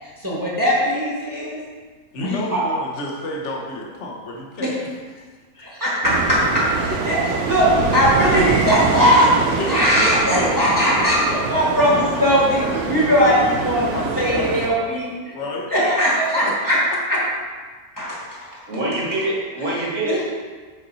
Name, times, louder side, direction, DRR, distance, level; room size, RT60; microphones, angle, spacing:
voice 1, 0.0-1.6 2.2-2.7 4.6-4.8 5.6-15.3 15.7-16.8 17.1-17.2 18.0-18.6 19.6-20.2, equal, 15° right, -6 dB, 1.3 m, -20 dB
voice 2, 2.1-4.7 5.1-5.3 9.6-11.5 11.9-14.6 15.3-15.7 16.3-16.5, left 2 dB, 55° left, -1 dB, 1.2 m, -30 dB
sound 1, 6.0-14.7, right 5 dB, 75° right, 1.1 m, -24 dB
voice 3, 18.7-20.2, right 1 dB, 55° right, -5 dB, 2.0 m, -24 dB
6.9 x 4.2 x 4.1 m, 1.4 s
omnidirectional pair, 1.6 m